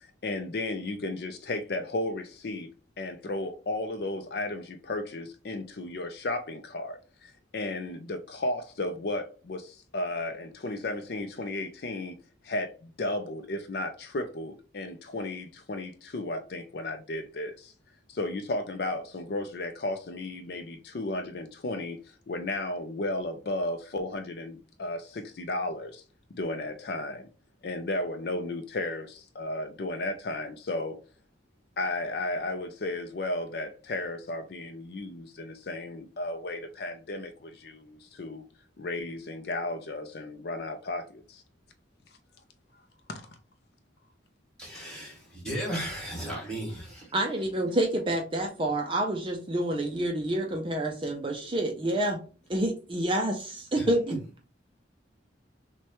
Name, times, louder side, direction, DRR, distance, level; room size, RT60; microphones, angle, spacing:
voice 1, 0.0-2.7 3.0-12.2 12.4-17.7 18.1-26.0 26.3-27.3 27.6-31.0 31.8-38.4 38.8-41.4 43.1-43.3, left 2 dB, 55° left, 0.4 m, -34 dB
voice 2, 44.6-47.1 53.8-53.9, right 1 dB, 5° left, 2.0 m, -35 dB
voice 3, 47.1-52.2 52.5-54.2, right 1 dB, 25° right, 0.4 m, -28 dB
6.1 x 2.2 x 2.9 m
head